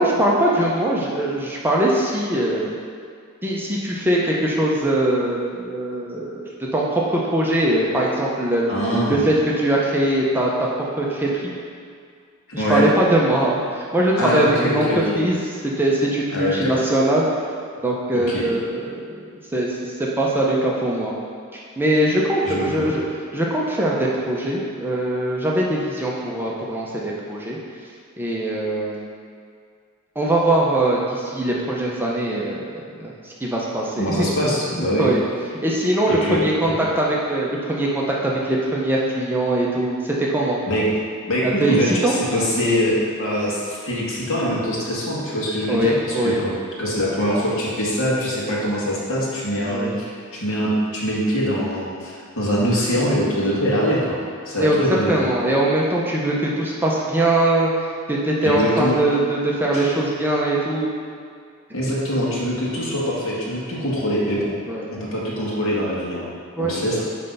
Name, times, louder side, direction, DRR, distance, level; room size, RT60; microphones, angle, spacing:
voice 1, 0.0-2.7 3.4-8.7 9.1-10.7 11.0-11.5 12.5-14.8 15.2-15.4 15.6-17.3 17.8-19.0 19.5-21.1 21.5-23.0 23.3-27.6 28.2-29.0 30.2-35.2 35.6-40.6 41.4-41.8 42.0-42.2 45.7-46.4 49.7-49.9 54.6-54.8 55.1-60.9 64.7-64.9 66.6-66.7, right 1 dB, 10° right, -4 dB, 0.7 m, -21 dB
voice 2, 8.7-9.2 12.5-12.8 14.2-15.2 16.3-16.8 18.1-18.5 22.4-22.9 34.0-35.1 36.1-36.7 40.7-40.8 41.3-46.5 46.8-50.1 50.4-54.2 54.5-55.3 58.4-59.0 59.7-59.8 61.7-64.5 64.9-66.2 66.6-67.0, equal, 60° left, -5 dB, 1.8 m, -23 dB
9.6 x 3.4 x 5.4 m, 2.2 s
head